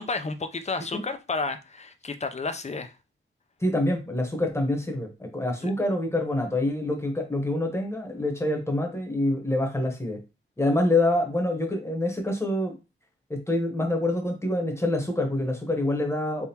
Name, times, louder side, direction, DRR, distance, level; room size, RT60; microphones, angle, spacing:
voice 1, 0.0-2.9 5.6-5.7, left 3 dB, 30° left, 0.5 m, -31 dB
voice 2, 3.6-10.2 10.6-12.7 13.3-16.5, left 1 dB, 10° left, 1.1 m, -26 dB
3.6 x 3.3 x 2.8 m
wide cardioid pair, 90°, 21 cm